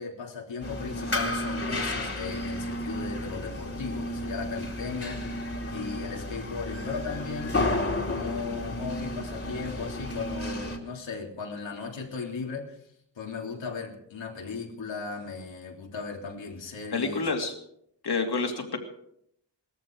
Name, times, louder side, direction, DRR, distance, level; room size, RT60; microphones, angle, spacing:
voice 1, 0.0-5.3 5.7-7.6 8.1-12.8 13.2-17.3, left 5 dB, 80° left, 0 dB, 3.4 m, -36 dB
sound 1, 0.6-10.8, left 1 dB, 30° left, 2.6 m, -32 dB
voice 2, 16.9-17.5 18.0-18.8, left 4 dB, 60° left, 3 dB, 2.8 m, -28 dB
19.0 x 14.0 x 4.8 m, 0.72 s
wide cardioid pair, 120°, 44 cm